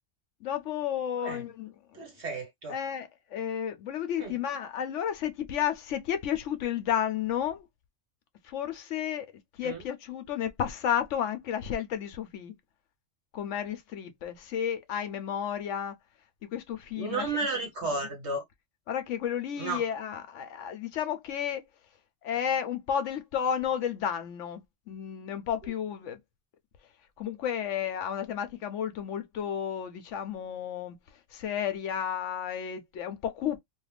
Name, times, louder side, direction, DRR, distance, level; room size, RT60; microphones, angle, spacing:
voice 1, 0.4-2.0 2.7-7.7 8.4-9.3 9.6-12.5 13.3-15.9 16.5-17.3 17.9-18.1 18.9-21.6 22.2-26.2 27.2-31.0 31.3-33.6, left 9 dB, 75° left, 0.9 m, -32 dB
voice 2, 1.9-2.7 4.2-4.3 9.6-9.8 17.0-18.4 19.6-19.8, right 3 dB, 60° right, 1.6 m, -33 dB
2.8 x 2.4 x 3.3 m
omnidirectional pair, 1.3 m